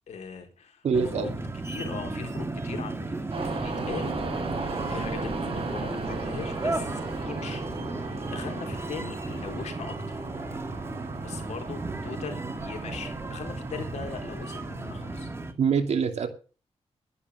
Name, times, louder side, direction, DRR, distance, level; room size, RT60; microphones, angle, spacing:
voice 1, 0.1-0.9 1.1-1.3 1.7-4.2 4.9-7.6 8.0-10.2 11.2-15.3, left 6 dB, 85° left, 4.0 m, -40 dB
voice 2, 0.8-1.3 15.6-16.3, right 6 dB, 75° right, 2.7 m, -24 dB
sound 1, 0.9-15.5, right 2 dB, 20° right, 2.0 m, -35 dB
sound 2, 3.3-15.2, right 3 dB, 55° right, 5.7 m, -37 dB
12.0 x 11.0 x 6.6 m
wide cardioid pair, 145°, 11 cm